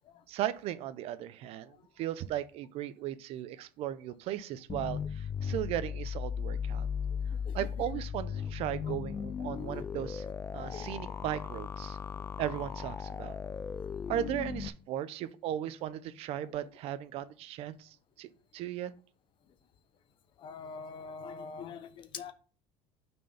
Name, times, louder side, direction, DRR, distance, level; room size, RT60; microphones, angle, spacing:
voice 1, 0.3-6.9 7.5-10.3 10.5-12.0 12.4-13.4 14.1-18.9, right 11 dB, 55° right, 14 dB, 0.6 m, -37 dB
sound 1, 4.7-14.7, left 7 dB, 20° left, 0.4 m, -37 dB
voice 2, 9.4-9.8 10.6-10.9 20.4-22.3, left 5 dB, 45° left, 11 dB, 0.9 m, -44 dB
6.2 x 4.5 x 5.5 m, 0.38 s
cardioid pair, 140°, 12 cm